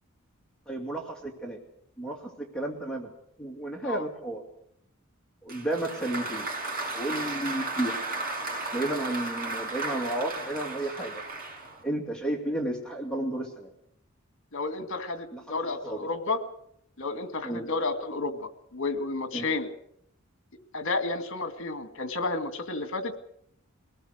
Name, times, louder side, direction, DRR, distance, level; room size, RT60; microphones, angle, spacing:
voice 1, 0.7-1.6 2.0-3.1 3.4-4.4 5.4-6.5 6.9-8.0 8.7-11.2 11.8-13.7 15.3-15.4 15.8-16.1 17.4-17.6 19.3-19.5, right 1 dB, 5° left, 0 dB, 2.5 m, -32 dB
Applause, 5.5-11.8, right 2 dB, 45° right, 6.0 m, -34 dB
voice 2, 14.5-16.4 17.0-19.7 20.7-23.2, left 3 dB, 65° left, 8 dB, 2.2 m, -31 dB
23.5 x 18.5 x 6.6 m, 0.73 s
head